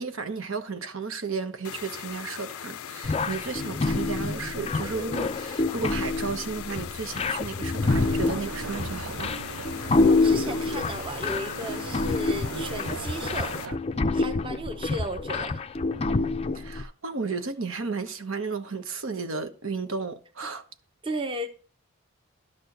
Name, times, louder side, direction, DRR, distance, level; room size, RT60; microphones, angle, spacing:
voice 1, 0.0-9.4 16.5-20.6, right 4 dB, 70° right, 1.0 m, -33 dB
sound 1, 1.6-13.7, left 9 dB, 90° left, 0.5 m, -40 dB
sound 2, 3.0-16.8, left 3 dB, 30° left, 0.4 m, -27 dB
sound 3, 7.8-13.8, right 6 dB, 90° right, 0.5 m, -39 dB
voice 2, 10.1-13.6 14.1-15.6 20.4-20.5 21.0-21.5, right 1 dB, 25° right, 0.8 m, -34 dB
12.0 x 4.4 x 6.5 m
head